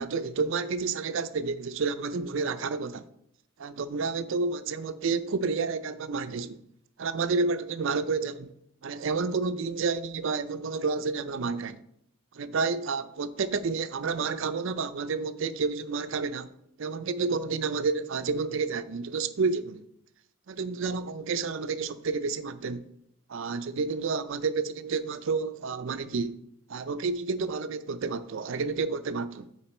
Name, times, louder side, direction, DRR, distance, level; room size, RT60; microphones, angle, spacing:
voice 1, 0.0-3.1 3.6-6.6 7.0-8.5 8.8-11.8 12.3-16.5 16.8-19.9 20.5-22.9 23.3-26.4 26.7-29.5, right 4 dB, 60° right, 0.5 m, -30 dB
9.0 x 4.4 x 4.3 m
head